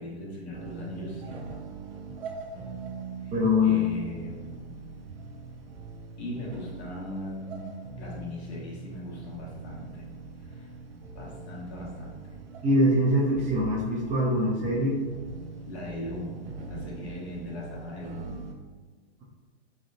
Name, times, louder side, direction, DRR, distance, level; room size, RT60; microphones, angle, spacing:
voice 1, 0.0-1.4 3.2-3.4 3.6-4.8 6.2-10.1 10.4-10.7 11.1-12.4 15.7-18.4, left 1 dB, 65° left, -4 dB, 1.5 m, -39 dB
sound 1, 0.5-18.5, right 3 dB, 55° right, 0.8 m, -42 dB
voice 2, 3.3-3.9 12.6-15.0, left 1 dB, 20° right, -4 dB, 0.8 m, -23 dB
3.6 x 3.3 x 2.8 m, 1.4 s
hypercardioid pair, 115°, 34 cm